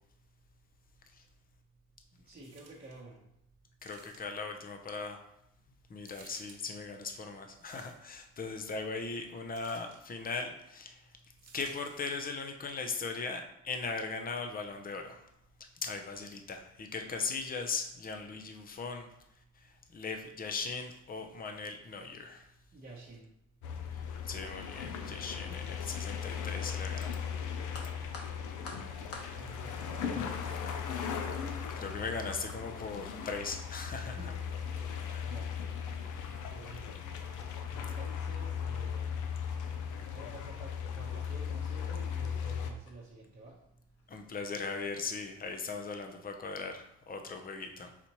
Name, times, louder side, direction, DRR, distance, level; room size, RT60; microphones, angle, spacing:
voice 1, 2.3-3.2 22.7-23.3 25.3-25.6 29.3-30.6 34.0-34.8 35.2-35.6 36.4-37.2 37.7-39.2 40.1-43.6, right 2 dB, 30° right, -6 dB, 1.0 m, -50 dB
sound 1, 2.4-3.0 3.8-4.5 6.0-6.6 7.5-8.2 9.5-10.0 11.4-12.2 12.9-13.0, right 4 dB, 55° right, 1.0 m, -57 dB
voice 2, 3.8-5.2 5.9-11.0 11.5-15.2 15.8-19.1 19.9-22.5 23.9-24.0 24.3-27.2 28.7-28.8 31.8-34.2 35.1-35.2 44.1-47.9, left 4 dB, 30° left, 5 dB, 0.6 m, -39 dB
sound 2, 23.6-42.7, left 7 dB, 80° left, 0.6 m, -37 dB
sound 3, 27.7-45.2, left 3 dB, 50° left, 1.2 m, -57 dB
4.2 x 4.2 x 3.0 m, 0.78 s
cardioid pair, 90°, 30 cm